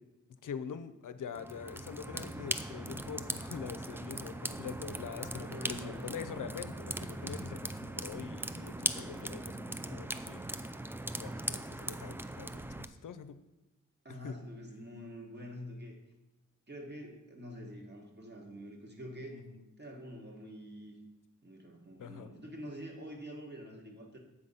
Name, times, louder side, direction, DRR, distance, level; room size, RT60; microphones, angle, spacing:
voice 1, 0.4-10.4 11.1-13.4 14.1-14.4 19.3-19.6 22.0-22.3, left 7 dB, 80° left, 12 dB, 0.5 m, -44 dB
sound 1, 1.3-12.9, right 1 dB, 5° right, 0.3 m, -39 dB
voice 2, 5.2-6.4 6.9-7.4 14.0-15.9 16.7-19.4 19.8-21.0 21.4-24.2, equal, 35° right, 0 dB, 1.6 m, -46 dB
8.2 x 3.9 x 5.5 m, 0.99 s
cardioid pair, 60°, 31 cm